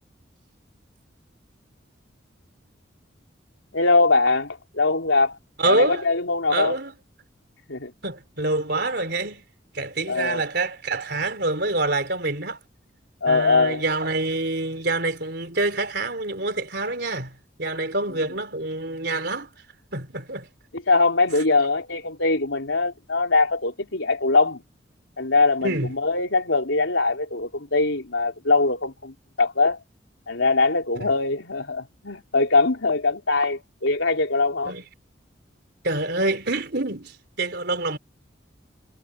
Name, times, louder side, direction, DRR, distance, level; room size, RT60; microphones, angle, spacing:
voice 1, 3.7-5.4 5.6-6.7 7.7-7.9 10.1-10.4 13.2-13.8 20.9-24.6 25.2-29.8 30.3-34.7, left 3 dB, 85° left, 3.6 m, -22 dB
voice 2, 5.6-6.0 6.5-6.9 8.0-9.4 9.7-12.6 13.3-19.5 19.9-20.5 25.6-25.9 31.0-31.1 34.6-34.8 35.8-38.0, right 2 dB, 55° right, 4.3 m, -26 dB
head